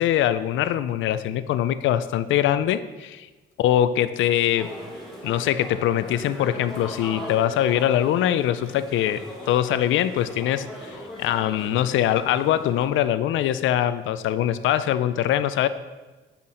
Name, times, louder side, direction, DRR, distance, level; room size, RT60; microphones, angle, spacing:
voice 1, 0.0-3.3 3.6-4.7 5.2-9.2 9.5-15.7, left 11 dB, 80° left, 14 dB, 0.4 m, -23 dB
sound 1, 4.6-12.9, equal, ahead, 2.5 m, -39 dB
8.2 x 5.8 x 3.8 m, 1.2 s
cardioid pair, 90°, 20 cm